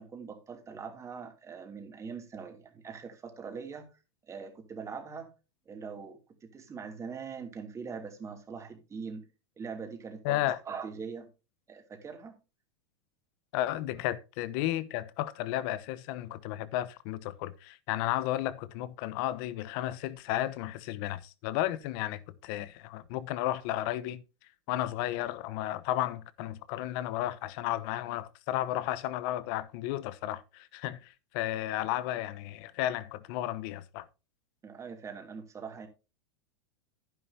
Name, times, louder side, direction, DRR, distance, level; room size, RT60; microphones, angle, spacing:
voice 1, 0.0-3.9 4.3-5.3 5.7-9.2 9.6-10.4 10.7-11.3 11.7-12.4 34.6-35.9, right 5 dB, 20° right, 2.7 m, -42 dB
voice 2, 10.2-10.6 13.5-24.2 24.7-34.1, left 14 dB, 55° left, 1.0 m, -33 dB
11.0 x 10.0 x 2.8 m
hypercardioid pair, 120°, 14 cm